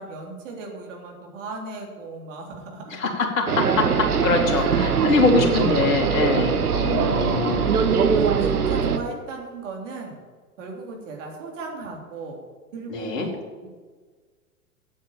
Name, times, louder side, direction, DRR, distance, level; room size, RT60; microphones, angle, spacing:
voice 1, 0.0-3.0 4.5-5.6 6.3-7.0 7.4-7.8 8.1-10.2 10.6-12.4 12.7-13.7, right 3 dB, 55° right, 0 dB, 3.4 m, -37 dB
voice 2, 2.9-7.8 12.9-13.3, left 4 dB, 60° left, 1 dB, 2.4 m, -23 dB
sound 1, 3.5-9.0, right 6 dB, 75° right, 1.1 m, -22 dB
8.7 x 8.6 x 8.7 m, 1.4 s
figure-of-eight pair, 100°, 46 cm